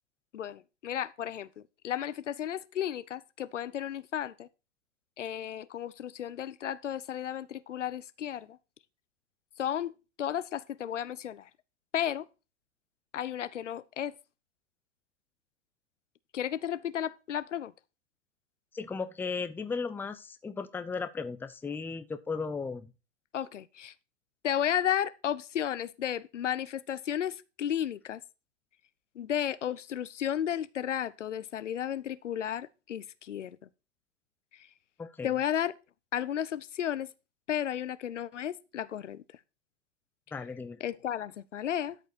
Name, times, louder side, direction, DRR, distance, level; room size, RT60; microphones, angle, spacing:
voice 1, 0.3-4.5 5.2-8.6 9.6-11.5 11.9-12.3 13.1-14.1 16.3-17.7 23.3-23.9 24.4-28.2 29.1-33.6 34.5-34.7 35.2-35.7 36.1-37.1 37.5-39.2 40.8-42.0, left 10 dB, 80° left, 0.9 m, -33 dB
voice 2, 18.7-22.9 35.0-35.3 40.3-40.8, left 4 dB, 5° left, 0.6 m, -36 dB
12.5 x 5.3 x 4.4 m
hypercardioid pair, 110°, 36 cm